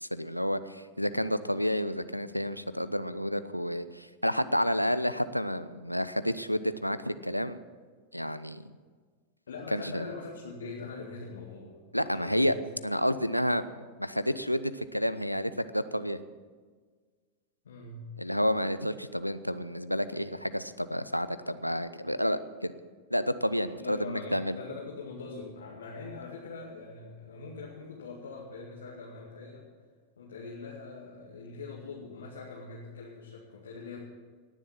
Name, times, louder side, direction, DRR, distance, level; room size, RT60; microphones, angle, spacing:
voice 1, 0.0-7.6 8.1-8.7 9.7-10.0 11.9-12.5 12.8-13.6 14.0-16.2 18.2-22.7 23.1-24.6, equal, 90° left, 13 dB, 0.6 m, -30 dB
voice 2, 9.5-12.6 17.6-18.1 23.7-29.6 30.2-34.0, left 4 dB, 70° left, -3 dB, 2.2 m, -42 dB
18.5 x 7.2 x 7.5 m, 1.5 s
figure-of-eight pair, 90°, 0 cm